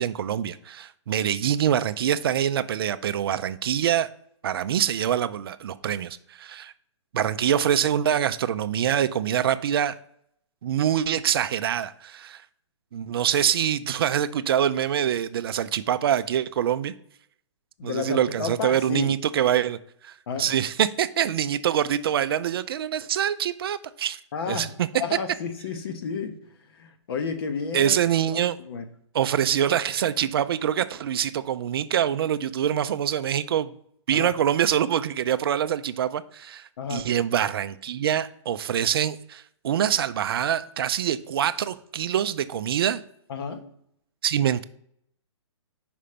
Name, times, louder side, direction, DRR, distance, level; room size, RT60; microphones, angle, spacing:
voice 1, 0.0-4.1 4.4-6.7 7.1-9.9 10.6-12.4 12.9-16.9 17.8-19.8 20.0-20.1 20.4-24.2 24.5-24.9 27.7-28.6 29.1-33.7 34.1-43.0 44.2-44.6, right 9 dB, 50° right, 12 dB, 0.4 m, -25 dB
voice 2, 17.8-19.1 20.3-20.5 24.3-26.4 26.7-28.0 28.3-28.8 34.1-34.3 36.8-37.1 43.3-43.6, left 5 dB, 50° left, 7 dB, 1.0 m, -31 dB
5.6 x 5.1 x 5.0 m, 0.68 s
hypercardioid pair, 155°, 16 cm